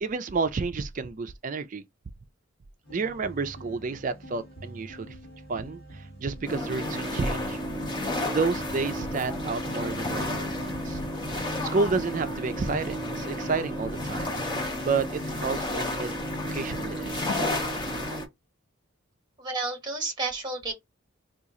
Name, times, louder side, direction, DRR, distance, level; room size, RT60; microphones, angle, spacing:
voice 1, 0.0-1.8 2.9-5.2 5.5-7.6 8.3-11.0 11.6-14.3 14.8-16.1 16.4-17.3, right 4 dB, 40° right, 0.4 m, -30 dB
sound 1, 2.8-14.7, right 2 dB, 85° left, 1.2 m, -47 dB
sound 2, 6.5-18.3, left 1 dB, 20° left, 0.8 m, -31 dB
voice 2, 19.4-20.7, right 3 dB, 20° right, 1.1 m, -31 dB
2.9 x 2.4 x 3.7 m
head